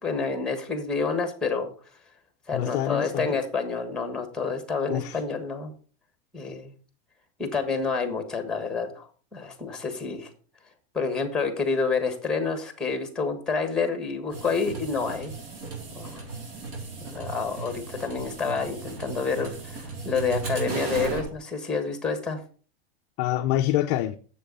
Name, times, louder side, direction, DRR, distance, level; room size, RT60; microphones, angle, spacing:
voice 1, 0.0-1.7 2.5-5.7 6.3-6.7 7.4-10.3 10.9-15.3 15.9-16.2 17.0-22.4, left 4 dB, ahead, 1.5 m, -28 dB
voice 2, 2.5-3.4 4.9-5.2 23.2-24.2, left 13 dB, 30° left, 0.4 m, -26 dB
sound 1, 14.3-21.3, right 4 dB, 60° right, 3.9 m, -36 dB
7.4 x 6.8 x 5.3 m
supercardioid pair, 160°, 32 cm